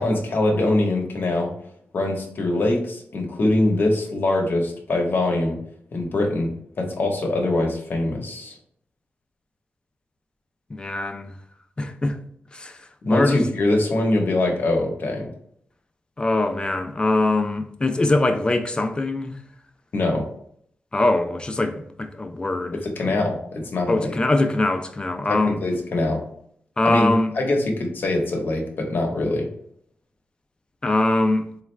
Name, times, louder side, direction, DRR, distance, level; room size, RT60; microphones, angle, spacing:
voice 1, 0.0-1.5 1.9-5.6 5.9-6.5 6.8-8.5 13.0-15.3 19.9-20.2 22.8-24.1 25.3-26.2 26.8-29.5, left 2 dB, 60° left, 0.9 m, -23 dB
voice 2, 10.7-11.3 11.8-12.2 12.5-13.4 16.2-19.4 20.9-23.2 23.9-25.6 26.8-27.3 30.8-31.5, left 2 dB, 25° left, 0.4 m, -22 dB
4.1 x 2.4 x 3.2 m
wide cardioid pair, 120°, 4 cm